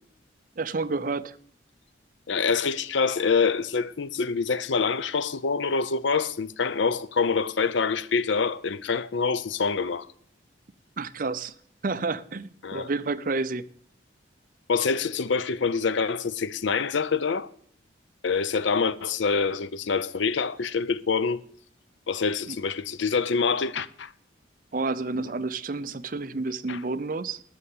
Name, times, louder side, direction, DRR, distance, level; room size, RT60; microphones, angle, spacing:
voice 1, 0.6-1.4 11.0-11.5 11.8-13.7 22.5-22.6 24.7-27.4, right 3 dB, 45° right, 0.5 m, -30 dB
voice 2, 2.3-10.1 12.6-12.9 14.7-17.5 18.2-21.4 22.1-24.1 26.7-26.8, left 5 dB, 75° left, 0.6 m, -26 dB
12.5 x 6.5 x 8.4 m
head